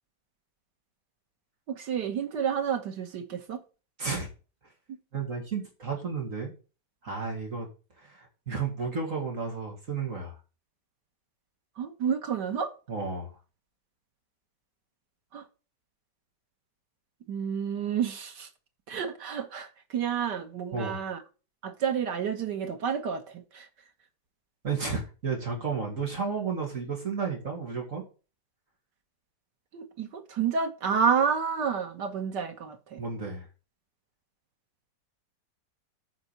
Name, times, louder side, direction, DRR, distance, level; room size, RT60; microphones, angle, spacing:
voice 1, 1.7-3.6 11.8-12.7 15.3-15.5 17.3-18.5 18.9-21.2 21.6-23.7 29.7-33.0, right 7 dB, 85° right, 2.1 m, -30 dB
voice 2, 5.1-6.5 7.0-7.7 8.0-10.4 12.9-13.3 20.7-21.0 24.6-28.0 33.0-33.5, right 5 dB, 50° right, 2.8 m, -32 dB
8.8 x 5.5 x 8.0 m
omnidirectional pair, 1.8 m